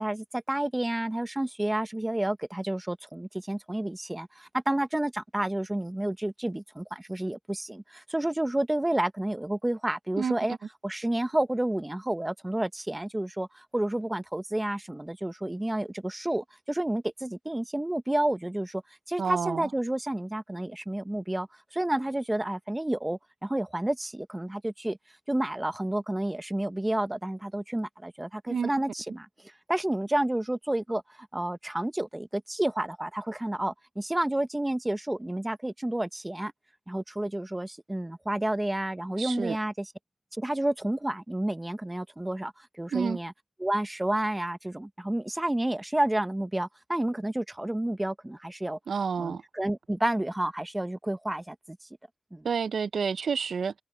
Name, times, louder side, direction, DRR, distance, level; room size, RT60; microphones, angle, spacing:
voice 1, 0.0-10.6 10.8-18.8 19.1-25.0 25.3-36.5 36.9-39.9 40.3-43.3 43.6-48.8 49.2-51.8 52.3-52.5, right 1 dB, 15° right, 0.7 m, -30 dB
voice 2, 19.2-19.7 28.5-28.7 39.2-39.6 42.9-43.2 48.9-49.4 52.4-53.7, right 6 dB, 85° right, 0.4 m, -29 dB
wide cardioid pair, 110°, 0 cm